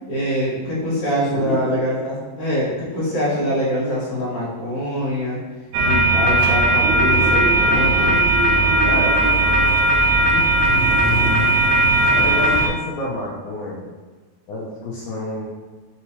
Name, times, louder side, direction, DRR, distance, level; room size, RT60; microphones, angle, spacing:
voice 1, 0.1-5.4 5.8-8.2, equal, 60° left, -12 dB, 2.1 m, -24 dB
voice 2, 1.3-1.8 8.8-9.2 10.3-10.8 12.2-13.9 14.5-15.4, left 2 dB, 85° left, -6 dB, 1.7 m, -28 dB
sound 1, 5.7-12.7, right 2 dB, 85° right, 2.0 m, -17 dB
5.6 x 3.0 x 2.8 m, 1.3 s
omnidirectional pair, 4.4 m